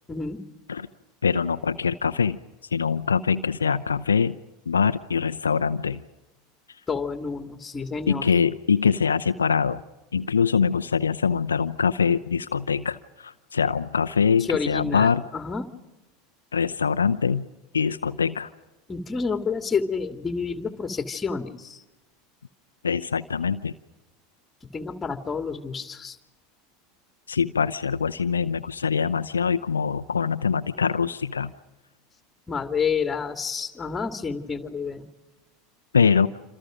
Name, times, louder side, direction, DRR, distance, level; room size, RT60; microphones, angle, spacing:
voice 1, 0.1-0.4 6.9-8.3 14.4-15.7 18.9-21.8 24.7-26.2 32.5-35.0, left 5 dB, 20° left, 6 dB, 2.5 m, -29 dB
voice 2, 1.2-2.4 2.7-4.4 4.7-6.0 8.1-9.8 10.1-15.2 16.5-17.5 17.7-18.5 22.8-23.7 27.3-31.5 35.9-36.3, left 6 dB, 85° left, 10 dB, 0.7 m, -23 dB
28.0 x 27.0 x 5.2 m, 1.1 s
figure-of-eight pair, 80°, 0 cm